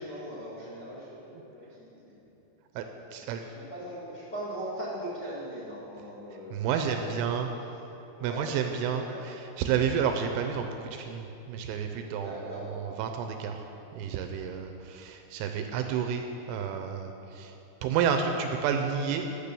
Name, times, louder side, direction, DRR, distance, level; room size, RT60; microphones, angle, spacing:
voice 1, 0.0-2.0 3.1-6.6 7.0-7.1 7.5-7.6 8.2-8.5 8.9-9.2 12.2-12.6, right 1 dB, 65° left, -8 dB, 1.0 m, -40 dB
voice 2, 6.5-7.5 8.2-13.6 13.9-17.5 17.8-19.3, right 7 dB, 80° right, 5 dB, 2.8 m, -30 dB
11.5 x 6.9 x 6.8 m, 3.0 s
omnidirectional pair, 5.8 m